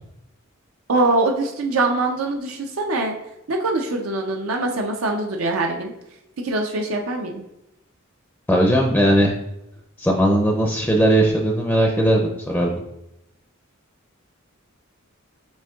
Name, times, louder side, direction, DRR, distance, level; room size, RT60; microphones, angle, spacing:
voice 1, 0.9-3.1 3.5-5.9 6.4-7.4, right 2 dB, 80° right, 2 dB, 0.5 m, -23 dB
voice 2, 8.5-9.3 10.0-12.7, right 1 dB, 5° left, 0 dB, 0.4 m, -18 dB
6.2 x 3.6 x 2.3 m, 0.86 s
head